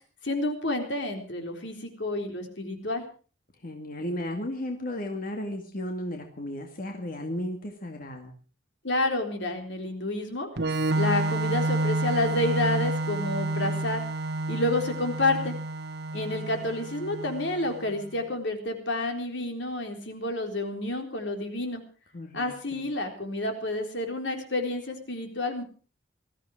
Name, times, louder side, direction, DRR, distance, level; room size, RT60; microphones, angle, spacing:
voice 1, 0.2-3.0 8.8-10.5 10.9-14.0 14.5-15.6 16.1-21.8 22.3-25.6, left 2 dB, 70° left, 4 dB, 3.9 m, -29 dB
voice 2, 3.6-8.3 16.1-16.3 22.1-22.8, left 1 dB, 50° left, 3 dB, 2.3 m, -34 dB
Organ, 10.6-18.1, right 2 dB, 60° right, 1.3 m, -29 dB
20.0 x 14.0 x 4.9 m, 0.38 s
head